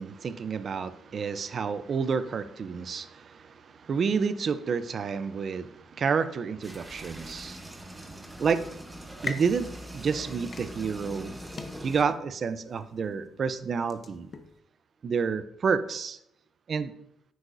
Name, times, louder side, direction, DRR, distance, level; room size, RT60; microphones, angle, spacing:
voice 1, 0.0-11.4 11.8-14.3 15.0-16.2 16.7-16.9, right 5 dB, 50° right, 13 dB, 0.6 m, -30 dB
sound 1, 6.6-12.0, equal, 15° right, 1.1 m, -42 dB
sound 2, 9.1-14.6, left 4 dB, 40° left, 0.8 m, -44 dB
9.5 x 8.3 x 2.6 m, 0.78 s
cardioid pair, 90°, 0 cm